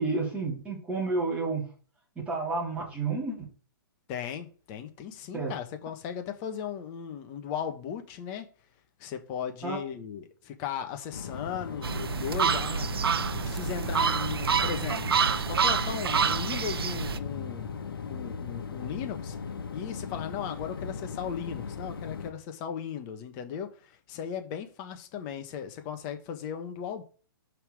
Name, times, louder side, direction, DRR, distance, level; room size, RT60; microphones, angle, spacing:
voice 1, 0.0-1.7 2.3-3.4 5.3-5.5 9.6-9.8, right 3 dB, 10° right, 3.6 m, -30 dB
voice 2, 4.1-8.5 9.0-12.9 13.4-17.7 18.0-19.4 19.7-27.0, left 8 dB, 35° left, 1.3 m, -37 dB
sound 1, 11.1-22.3, left 5 dB, 80° left, 1.4 m, -38 dB
sound 2, 11.8-17.2, right 6 dB, 85° right, 0.6 m, -27 dB
5.8 x 5.6 x 4.8 m
hypercardioid pair, 140°, 12 cm